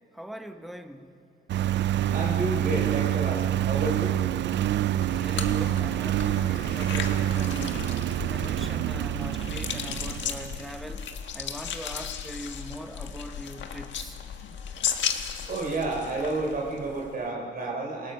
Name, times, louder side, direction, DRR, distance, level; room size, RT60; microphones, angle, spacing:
voice 1, 0.1-1.1 5.1-7.9 8.3-11.1 11.3-14.2, equal, ahead, 7 dB, 1.0 m, -41 dB
Engine, 1.5-10.9, right 12 dB, 65° right, 0.4 m, -27 dB
voice 2, 2.1-4.2 15.5-18.1, right 2 dB, 50° right, -1 dB, 3.8 m, -30 dB
sound 1, 5.0-17.2, left 8 dB, 70° left, 1.6 m, -35 dB
28.0 x 18.5 x 5.8 m, 2.4 s
cardioid pair, 140°, 20 cm